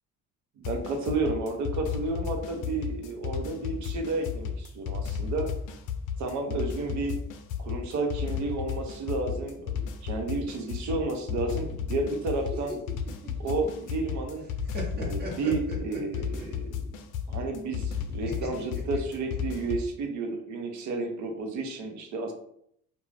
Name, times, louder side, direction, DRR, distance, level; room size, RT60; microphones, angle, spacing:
sound 1, 0.6-19.9, left 7 dB, 80° left, 0.5 m, -33 dB
voice 1, 0.6-5.5 6.2-7.2 7.6-12.8 13.4-14.5 14.9-16.9 17.3-22.3, right 3 dB, 65° right, 4 dB, 0.7 m, -31 dB
sound 2, 12.4-14.1 14.4-16.6 18.3-19.7, equal, 30° right, 0.7 m, -39 dB
2.5 x 2.2 x 3.2 m, 0.70 s
cardioid pair, 120°, 31 cm